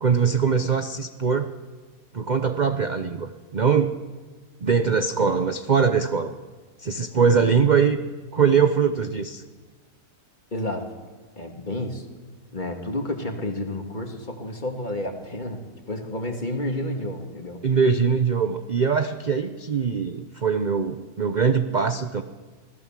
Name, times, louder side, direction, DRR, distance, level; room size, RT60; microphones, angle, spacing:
voice 1, 0.0-1.5 2.1-4.0 4.6-6.3 6.8-8.0 8.3-9.4 17.6-22.2, right 6 dB, 35° right, 8 dB, 0.8 m, -22 dB
voice 2, 10.5-10.8 11.4-12.1 12.5-17.6, left 1 dB, 30° left, 3 dB, 2.4 m, -30 dB
25.0 x 18.0 x 7.5 m, 1.4 s
omnidirectional pair, 1.7 m